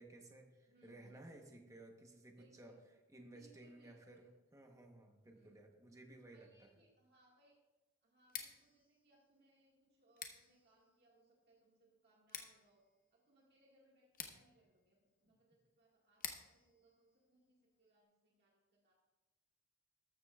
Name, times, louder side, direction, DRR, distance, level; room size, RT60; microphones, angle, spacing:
voice 1, 0.0-2.7 3.1-4.3 4.5-6.7, right 1 dB, 15° right, 3 dB, 0.9 m, -57 dB
voice 2, 0.7-1.3 2.4-2.8 3.2-4.3 5.3-5.7 6.3-7.6 8.0-12.8 13.1-18.9, right 1 dB, 45° right, -3 dB, 1.7 m, -71 dB
Scissors, 8.2-18.0, left 7 dB, 40° left, 1.0 m, -54 dB
13.5 x 12.5 x 2.3 m, 1.1 s
head